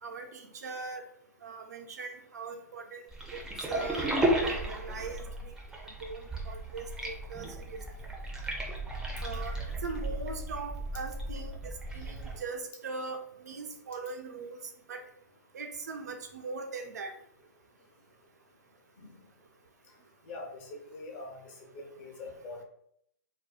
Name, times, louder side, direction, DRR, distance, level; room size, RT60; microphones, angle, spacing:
voice 1, 0.0-1.0 1.4-3.4 3.7-4.1 4.4-5.5 6.0-7.8 9.2-14.6 14.9-15.0 15.5-17.1, right 4 dB, 65° right, 4 dB, 0.4 m, -40 dB
sound 1, 3.1-12.4, right 1 dB, 5° right, 0.4 m, -34 dB
voice 2, 20.3-21.4 21.7-22.6, left 2 dB, 40° left, 0 dB, 0.7 m, -43 dB
2.6 x 2.0 x 2.3 m, 0.72 s
figure-of-eight pair, 120°, 9 cm